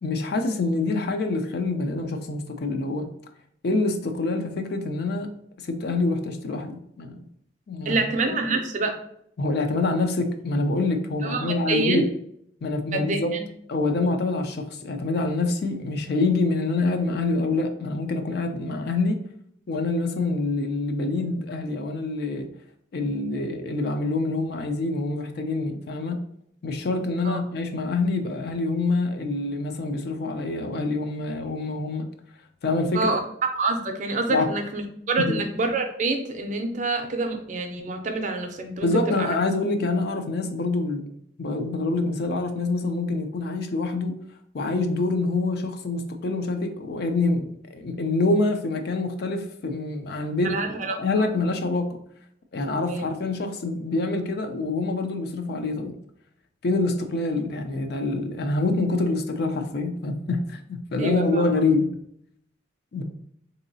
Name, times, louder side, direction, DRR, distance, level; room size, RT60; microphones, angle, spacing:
voice 1, 0.0-3.1 3.6-5.3 5.6-7.2 7.7-8.0 9.4-12.1 12.6-13.3 13.7-19.2 19.7-22.5 22.9-26.2 26.6-32.1 32.6-33.1 34.3-34.5 35.2-35.4 38.8-41.1 41.4-44.2 44.5-50.6 51.0-52.0 52.5-56.0 56.6-61.9 62.9-63.0, left 3 dB, 55° left, 0.4 m, -26 dB
voice 2, 7.8-9.0 11.2-12.0 12.9-13.4 27.2-27.4 32.9-34.8 35.1-39.3 50.4-51.0 52.9-53.1 61.0-61.5, right 3 dB, 40° right, 0.5 m, -27 dB
3.9 x 2.7 x 2.6 m
head